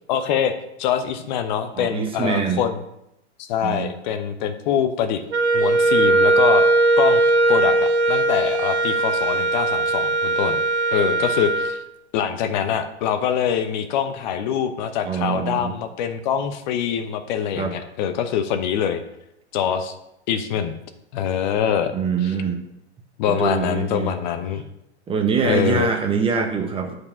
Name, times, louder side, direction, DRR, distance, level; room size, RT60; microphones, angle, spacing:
voice 1, 0.1-0.5 0.8-2.8 3.4-5.2 5.5-6.7 7.0-7.2 7.5-10.6 10.9-11.8 12.1-19.0 19.5-19.9 20.3-20.7 21.1-21.9 22.2-22.3 23.2-24.6 25.4-25.9, left 8 dB, 45° left, 8 dB, 1.0 m, -24 dB
voice 2, 1.7-2.6 3.6-3.9 15.0-15.7 17.6-17.7 21.9-22.6 23.3-24.1 25.1-26.9, right 6 dB, 15° right, 4 dB, 1.2 m, -24 dB
Wind instrument woodwind instrument, 5.3-11.8, right 2 dB, 80° right, 0.9 m, -19 dB
10.5 x 4.9 x 5.5 m, 0.83 s
figure-of-eight pair, 105°, 34 cm